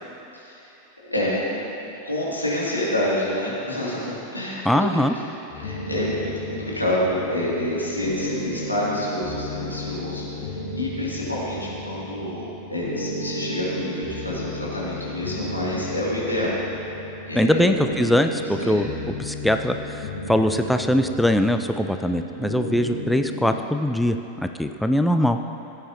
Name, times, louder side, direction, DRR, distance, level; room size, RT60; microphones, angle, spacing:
voice 1, 1.0-4.8 5.5-10.3 10.7-16.6 17.3-17.7 18.6-18.8, left 1 dB, 85° left, -7 dB, 2.5 m, -27 dB
voice 2, 4.6-5.1 17.3-25.4, left 1 dB, ahead, 6 dB, 0.3 m, -22 dB
sound 1, 5.5-23.6, equal, 55° left, 2.2 m, -34 dB
15.5 x 8.9 x 2.8 m, 3.0 s
figure-of-eight pair, 90°, 0 cm